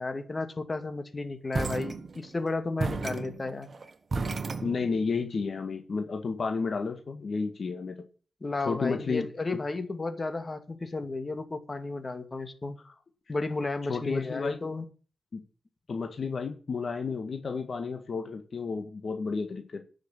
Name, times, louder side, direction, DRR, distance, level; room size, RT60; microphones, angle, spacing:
voice 1, 0.0-3.7 8.4-12.8 13.3-14.9, left 3 dB, 40° left, 8 dB, 2.3 m, -33 dB
sound 1, 1.5-2.4 2.8-5.2, right 3 dB, 55° right, 1.5 m, -33 dB
voice 2, 4.6-8.0 8.7-9.3 13.9-14.6 15.3-15.4 15.9-19.8, left 4 dB, 65° left, 5 dB, 1.8 m, -31 dB
10.5 x 6.5 x 8.7 m, 0.38 s
cardioid pair, 45°, 0 cm